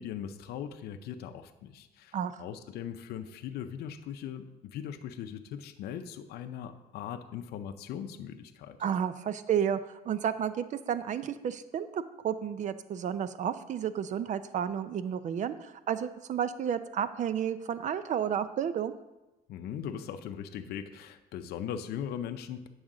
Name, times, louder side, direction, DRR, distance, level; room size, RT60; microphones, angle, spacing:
voice 1, 0.0-8.8 19.5-22.7, left 9 dB, 70° left, 7 dB, 0.6 m, -39 dB
voice 2, 8.8-9.8 10.1-18.9, right 8 dB, 45° right, 13 dB, 0.5 m, -31 dB
8.7 x 6.3 x 3.7 m, 1.0 s
cardioid pair, 110°, 17 cm